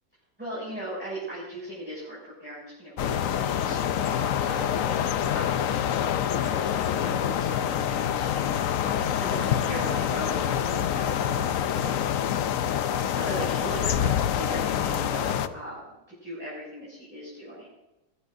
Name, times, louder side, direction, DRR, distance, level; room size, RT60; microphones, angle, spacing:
voice 1, 0.4-4.9 5.3-5.7 6.2-8.5 8.8-12.5 13.1-16.0 16.2-17.7, equal, 5° right, -8 dB, 6.6 m, -38 dB
sound 1, 3.0-15.5, left 9 dB, 65° left, 0.9 m, -26 dB
23.0 x 15.5 x 2.6 m, 1.0 s
omnidirectional pair, 1.9 m